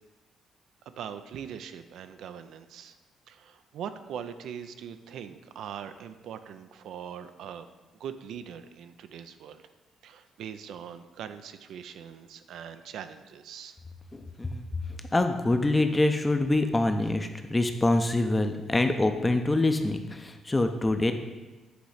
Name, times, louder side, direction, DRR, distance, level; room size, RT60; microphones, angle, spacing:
voice 1, 1.0-2.9 3.3-7.7 8.0-9.6 10.0-13.8, right 8 dB, 80° right, 10 dB, 0.4 m, -41 dB
voice 2, 14.1-14.7 15.1-21.1, left 2 dB, 20° left, 7 dB, 0.6 m, -25 dB
7.9 x 3.0 x 4.9 m, 1.2 s
cardioid pair, 90°, 0 cm